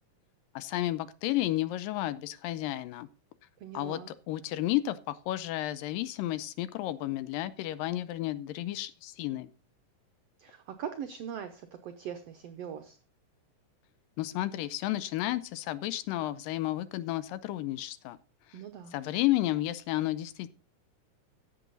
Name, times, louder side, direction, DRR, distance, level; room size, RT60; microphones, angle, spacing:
voice 1, 0.6-3.1 3.7-4.0 4.3-9.5 14.2-18.2 18.5-18.6 18.9-20.5, left 15 dB, 85° left, 16 dB, 2.4 m, -32 dB
voice 2, 3.6-4.1 10.4-13.0 18.5-19.0, right 8 dB, 90° right, 8 dB, 1.4 m, -41 dB
15.5 x 7.1 x 4.0 m, 0.36 s
omnidirectional pair, 3.9 m